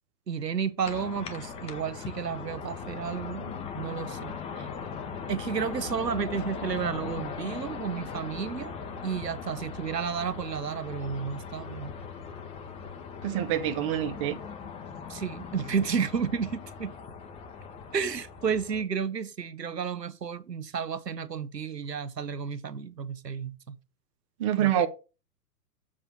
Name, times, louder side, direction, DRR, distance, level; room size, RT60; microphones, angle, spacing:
voice 1, 0.3-4.7 5.3-8.7 9.0-11.9 15.1-16.9 17.9-23.8 24.6-24.9, right 6 dB, 85° right, 1.0 m, -32 dB
sound 1, 0.8-18.8, left 6 dB, 10° left, 0.7 m, -39 dB
voice 2, 13.2-14.4 24.4-24.9, right 11 dB, 20° right, 0.5 m, -26 dB
7.5 x 4.4 x 6.0 m
figure-of-eight pair, 115°, 48 cm